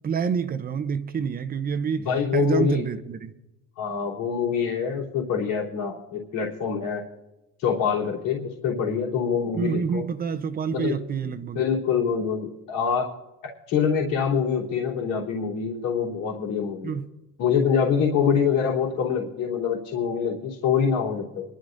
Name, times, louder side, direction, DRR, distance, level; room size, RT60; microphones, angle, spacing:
voice 1, 0.0-2.1 2.3-3.3 9.5-11.6 16.8-17.1, right 6 dB, 25° right, 0.7 m, -27 dB
voice 2, 2.0-2.8 3.8-7.0 7.6-10.0 10.7-11.0 11.5-13.1 13.7-16.9 17.4-21.4, left 7 dB, 70° left, 3.3 m, -25 dB
25.5 x 11.5 x 2.6 m
cardioid pair, 125°, 34 cm